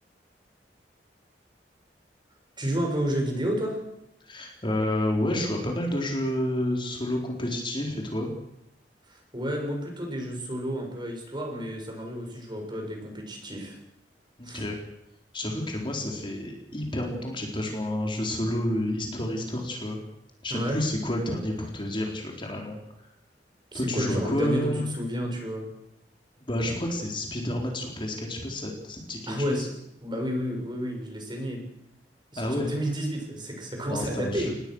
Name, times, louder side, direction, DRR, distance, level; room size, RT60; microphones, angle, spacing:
voice 1, 2.6-3.8 9.1-13.8 14.4-14.7 20.5-20.8 23.7-25.6 29.3-29.7 30.0-31.6 32.3-34.5, equal, 25° right, 2 dB, 7.0 m, -31 dB
voice 2, 4.3-8.3 14.4-14.8 15.3-20.0 20.4-22.8 23.7-24.9 26.5-29.7 32.4-32.7 33.9-34.5, left 1 dB, 30° left, 1 dB, 4.4 m, -29 dB
27.0 x 20.0 x 6.5 m, 0.81 s
head